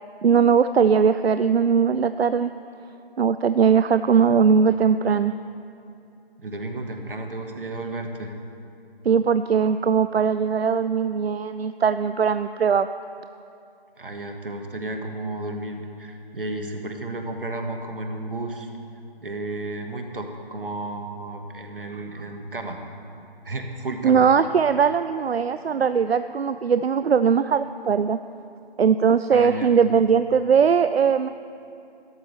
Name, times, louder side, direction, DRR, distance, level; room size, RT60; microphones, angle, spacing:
voice 1, 0.2-2.5 3.2-5.3 9.0-12.9 24.0-28.2 28.8-31.3, right 6 dB, 85° right, 11 dB, 0.5 m, -20 dB
voice 2, 6.4-8.3 14.0-18.7 19.2-22.8 23.4-24.2 29.3-29.8, right 2 dB, 60° right, 4 dB, 1.6 m, -33 dB
18.0 x 13.0 x 3.4 m, 2.7 s
figure-of-eight pair, 165°, 30 cm